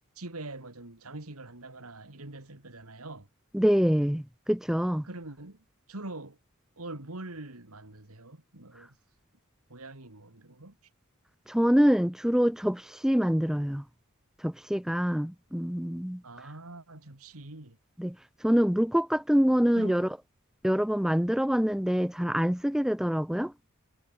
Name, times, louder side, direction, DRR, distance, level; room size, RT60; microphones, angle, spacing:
voice 1, 0.1-3.3 5.0-5.6 5.9-6.4 6.8-8.9 9.7-10.8 16.2-17.8 19.7-20.1, right 2 dB, 90° right, 2.9 m, -43 dB
voice 2, 3.5-5.0 11.5-13.8 14.4-16.2 18.0-18.2 18.4-20.1 20.6-23.5, equal, ahead, 0.5 m, -25 dB
head